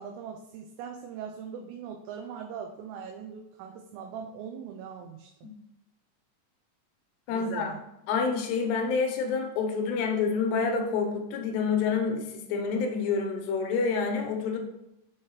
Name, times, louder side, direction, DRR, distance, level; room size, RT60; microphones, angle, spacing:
voice 1, 0.0-5.5 7.3-7.8, right 7 dB, 85° right, 3 dB, 2.8 m, -41 dB
voice 2, 7.3-7.7 8.1-14.6, left 5 dB, 80° left, 3 dB, 2.9 m, -28 dB
7.3 x 5.7 x 3.1 m, 0.88 s
omnidirectional pair, 5.0 m